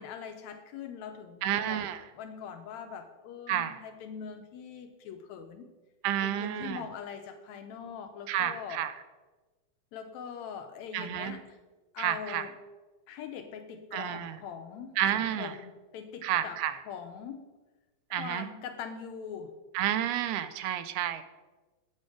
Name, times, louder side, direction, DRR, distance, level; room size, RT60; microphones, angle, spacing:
voice 1, 0.0-1.8 2.1-5.7 6.2-8.8 9.9-11.6 11.9-12.5 13.1-16.6 16.9-17.4 18.2-19.5, left 7 dB, 80° left, 7 dB, 1.7 m, -42 dB
voice 2, 1.4-2.0 3.5-3.8 6.0-6.8 8.3-8.9 10.9-11.4 12.0-12.5 13.9-14.4 15.0-15.5 16.2-16.8 18.1-18.5 19.7-21.2, right 11 dB, 90° right, 11 dB, 2.1 m, -30 dB
8.6 x 6.4 x 4.7 m, 1.2 s
omnidirectional pair, 3.5 m